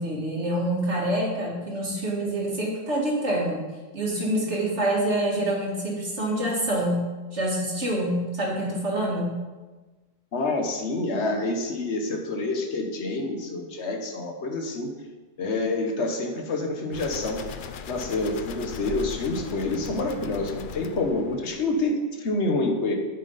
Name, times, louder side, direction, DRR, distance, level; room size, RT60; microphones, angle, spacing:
voice 1, 0.0-3.6 3.9-7.0 7.3-9.4, right 1 dB, 85° right, -4 dB, 2.6 m, -26 dB
voice 2, 10.3-14.9 15.4-17.4 17.9-22.9, left 2 dB, 80° left, 3 dB, 1.4 m, -27 dB
sound 1, 16.9-21.9, left 7 dB, 60° left, 0.7 m, -39 dB
10.0 x 7.5 x 4.1 m, 1.3 s
omnidirectional pair, 1.1 m